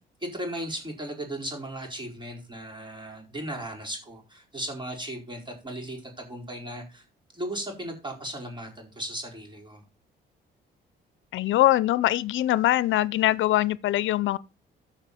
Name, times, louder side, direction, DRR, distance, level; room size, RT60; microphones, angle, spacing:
voice 1, 0.2-7.0 7.3-9.8, right 1 dB, 25° right, 4.6 m, -36 dB
voice 2, 11.3-14.4, left 14 dB, 75° left, 0.5 m, -22 dB
14.5 x 5.3 x 4.2 m
cardioid pair, 90°, 20 cm